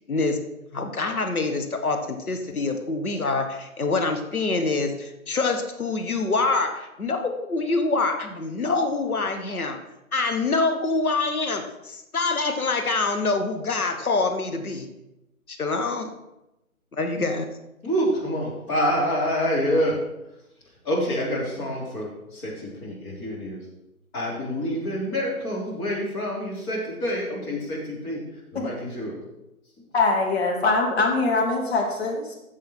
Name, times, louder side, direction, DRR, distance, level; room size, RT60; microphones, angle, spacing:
voice 1, 0.7-9.8 10.1-14.9 15.5-16.1 16.9-17.5, left 3 dB, 75° left, 6 dB, 1.8 m, -25 dB
voice 2, 17.8-20.1 20.8-23.7 24.1-29.2, equal, 20° left, -5 dB, 3.4 m, -27 dB
voice 3, 29.9-32.3, left 3 dB, 45° left, -1 dB, 3.0 m, -23 dB
13.5 x 7.4 x 4.5 m, 0.91 s
figure-of-eight pair, 145°, 44 cm